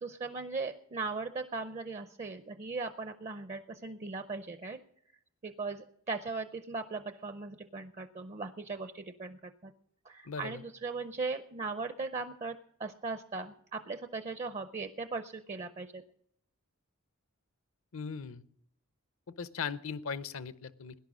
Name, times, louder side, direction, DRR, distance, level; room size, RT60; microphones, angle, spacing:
voice 1, 0.0-4.8 5.4-9.7 10.1-16.0, right 4 dB, 30° right, 9 dB, 0.5 m, -38 dB
voice 2, 10.3-10.6 17.9-18.4 19.4-21.0, left 6 dB, 65° left, 15 dB, 0.7 m, -38 dB
17.5 x 11.0 x 6.2 m, 0.69 s
head